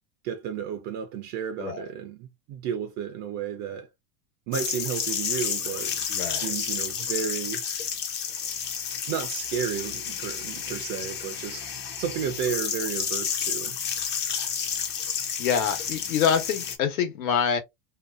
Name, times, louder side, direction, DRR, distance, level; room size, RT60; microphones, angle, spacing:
voice 1, 0.2-3.9 4.5-6.1 6.4-7.6 9.1-13.8, right 8 dB, 40° right, 0.4 m, -32 dB
sound 1, 4.5-16.8, left 7 dB, 25° left, 0.5 m, -31 dB
voice 2, 6.1-6.5 15.4-17.6, left 7 dB, 85° left, 1.1 m, -26 dB
2.7 x 2.3 x 2.3 m
supercardioid pair, 130°, 41 cm